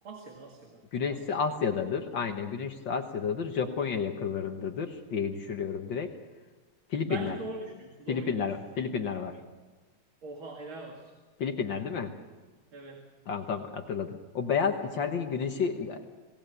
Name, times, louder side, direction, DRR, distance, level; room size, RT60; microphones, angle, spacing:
voice 1, 0.0-0.8 1.1-1.4 7.0-8.5 10.2-11.1 12.7-13.0, right 3 dB, 70° right, 2 dB, 3.0 m, -42 dB
voice 2, 0.9-6.1 6.9-7.4 8.1-9.4 11.4-12.1 13.3-16.1, left 6 dB, 65° left, 5 dB, 1.9 m, -31 dB
27.0 x 18.0 x 6.9 m, 1.3 s
omnidirectional pair, 2.3 m